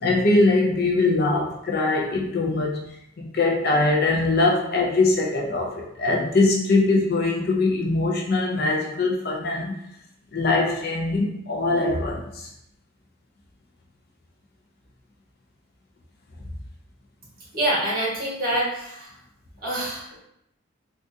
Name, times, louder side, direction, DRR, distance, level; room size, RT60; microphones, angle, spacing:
voice 1, 0.0-2.9 3.2-9.8 10.3-12.4, left 2 dB, 50° left, -1 dB, 0.5 m, -22 dB
voice 2, 17.5-19.2 19.6-20.2, right 1 dB, 45° right, -6 dB, 1.3 m, -26 dB
3.5 x 2.4 x 2.6 m, 0.77 s
head